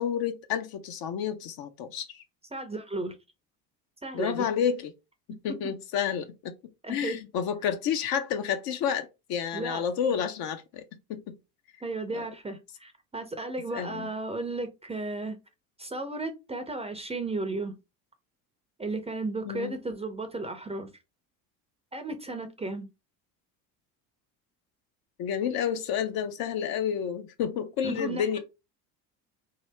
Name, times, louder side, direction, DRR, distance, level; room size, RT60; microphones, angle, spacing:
voice 1, 0.0-2.2 4.1-4.9 5.3-6.5 6.9-10.8 11.1-11.4 12.1-12.3 13.7-14.1 19.4-19.7 25.2-28.4, left 8 dB, 45° left, 0.7 m, -30 dB
voice 2, 2.5-3.1 4.0-4.5 5.5-5.6 6.8-7.2 9.5-9.8 11.8-15.4 15.8-17.8 18.8-20.9 21.9-22.9 27.8-28.4, right 2 dB, 10° right, 0.6 m, -34 dB
2.9 x 2.7 x 3.3 m
hypercardioid pair, 70°, 50 cm